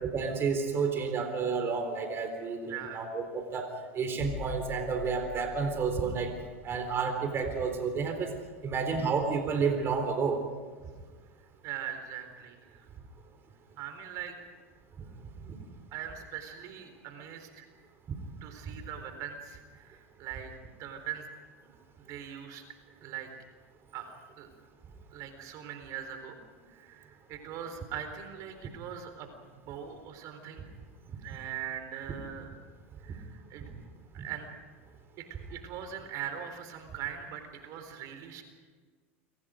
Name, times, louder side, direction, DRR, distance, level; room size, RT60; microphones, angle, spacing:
voice 1, 0.0-6.3 6.6-8.3 8.6-10.4, right 5 dB, 30° right, 6 dB, 4.0 m, -30 dB
voice 2, 2.7-3.1 11.6-12.9 13.8-14.4 15.0-15.1 15.9-17.6 18.4-21.3 21.6-22.6 23.0-23.3 23.9-24.5 25.1-26.4 26.7-30.7 31.2-32.5 33.0-33.6 34.1-34.5 35.2-38.4, right 9 dB, 50° right, 7 dB, 4.1 m, -41 dB
sound 1, 4.2-9.9 10.2-10.4, left 7 dB, 45° left, 5.0 m, -46 dB
29.5 x 24.5 x 5.2 m, 1.5 s
hypercardioid pair, 100°, 7 cm